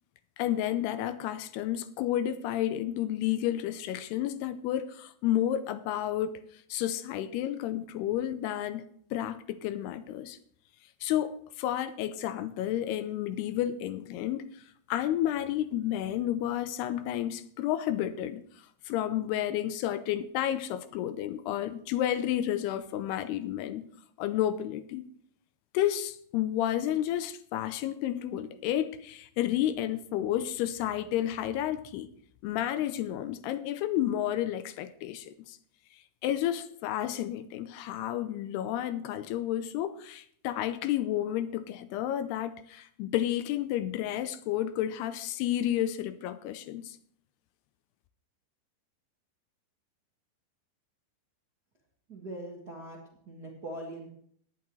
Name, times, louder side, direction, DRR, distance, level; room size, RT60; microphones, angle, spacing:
voice 1, 0.4-8.8 9.1-10.4 11.0-23.9 24.2-25.1 25.7-32.1 32.4-35.6 36.2-47.0, left 12 dB, 80° left, 2.6 m, -31 dB
voice 2, 52.1-53.0 53.2-54.2, right 1 dB, 45° right, 1.3 m, -41 dB
18.0 x 9.8 x 3.2 m
omnidirectional pair, 4.8 m